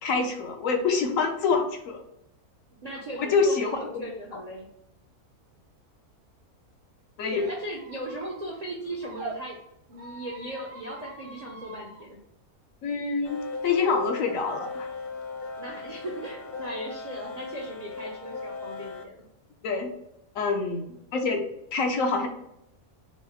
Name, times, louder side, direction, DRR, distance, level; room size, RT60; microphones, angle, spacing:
voice 1, 0.0-2.0 3.2-4.0 7.2-7.5 12.8-14.9 19.6-19.9 20.3-22.3, left 4 dB, 65° left, 3 dB, 1.0 m, -26 dB
voice 2, 2.8-4.7 7.2-9.6 9.9-12.2 15.6-19.2, right 1 dB, 45° right, -2 dB, 0.5 m, -38 dB
Squeak, 7.4-9.4 9.9-12.0, right 3 dB, 70° right, 1.4 m, -44 dB
sound 1, 13.3-19.0, left 4 dB, 90° left, 1.1 m, -37 dB
4.6 x 2.1 x 4.2 m, 0.80 s
omnidirectional pair, 1.6 m